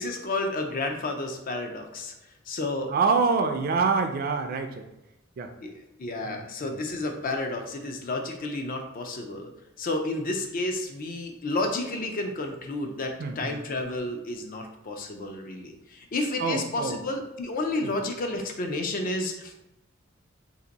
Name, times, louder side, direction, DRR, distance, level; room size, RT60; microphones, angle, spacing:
voice 1, 0.0-2.1 2.5-2.9 5.6-9.5 9.8-19.5, left 2 dB, 45° left, 4 dB, 0.5 m, -31 dB
voice 2, 2.9-4.8 5.4-5.5 6.2-6.8 13.2-13.6 16.4-17.0 17.8-17.9, right 4 dB, 50° right, 6 dB, 0.4 m, -26 dB
2.7 x 2.5 x 3.9 m, 0.95 s
head